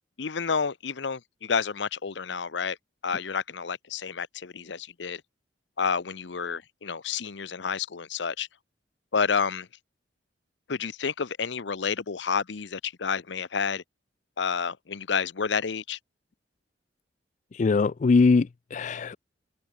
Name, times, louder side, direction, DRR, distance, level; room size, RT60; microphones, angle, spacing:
voice 1, 0.2-2.8 3.0-5.2 5.8-8.5 9.1-9.7 10.7-13.8 14.4-16.0, left 6 dB, 70° left, 0.7 m, -30 dB
voice 2, 17.5-19.2, left 4 dB, 40° left, 0.4 m, -22 dB
head